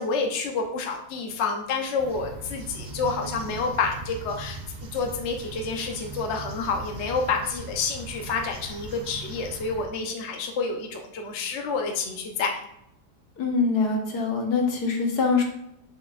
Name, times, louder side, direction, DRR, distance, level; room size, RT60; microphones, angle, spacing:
voice 1, 0.0-4.6 4.9-12.6, left 4 dB, 50° left, 2 dB, 1.0 m, -29 dB
sound 1, 2.0-9.9, right 3 dB, 40° right, 0.6 m, -39 dB
voice 2, 13.4-15.4, left 4 dB, 70° left, 2 dB, 1.7 m, -24 dB
6.7 x 6.5 x 2.4 m, 0.78 s
omnidirectional pair, 1.7 m